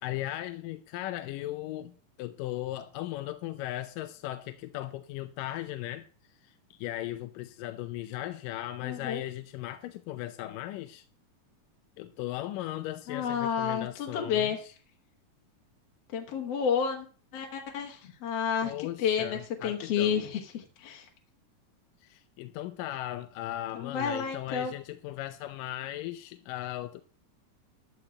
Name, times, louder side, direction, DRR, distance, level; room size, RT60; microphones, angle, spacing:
voice 1, 0.0-6.1 6.4-11.0 12.0-14.6 18.6-20.3 22.0-27.0, left 14 dB, 85° left, 2.3 m, -37 dB
voice 2, 8.8-9.2 13.1-14.6 16.1-17.1 17.3-21.1 23.8-24.7, left 7 dB, 60° left, 2.0 m, -30 dB
13.5 x 4.6 x 8.5 m
omnidirectional pair, 3.8 m